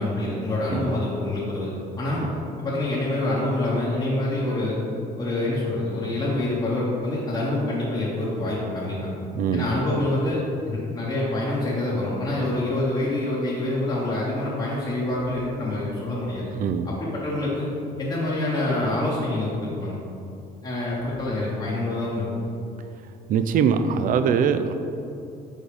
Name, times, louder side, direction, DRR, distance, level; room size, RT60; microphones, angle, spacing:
voice 1, 0.0-2.2 2.6-4.8 5.2-9.1 9.5-16.5 16.8-17.7 18.0-20.0 20.6-22.5, left 1 dB, 25° left, -7 dB, 1.0 m, -26 dB
voice 2, 9.3-9.7 16.5-16.9 23.3-24.7, right 7 dB, 55° right, 9 dB, 0.4 m, -22 dB
5.0 x 4.0 x 4.9 m, 2.7 s
cardioid pair, 110°, 17 cm